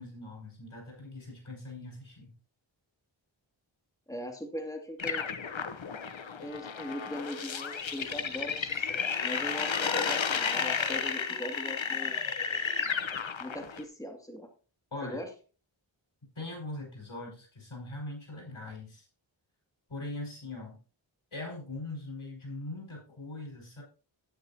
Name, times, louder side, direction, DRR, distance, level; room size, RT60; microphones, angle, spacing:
voice 1, 0.0-2.3 14.9-15.2 16.3-19.1 19.9-20.8 21.3-23.8, left 2 dB, 85° left, 0 dB, 4.9 m, -41 dB
voice 2, 4.1-5.3 6.4-8.6 8.9-12.1 13.4-14.5 15.0-15.3, equal, 5° left, 3 dB, 2.1 m, -40 dB
sound 1, 5.0-13.8, left 6 dB, 70° left, 0.9 m, -32 dB
11.5 x 9.5 x 2.7 m, 0.36 s
wide cardioid pair, 40°, 47 cm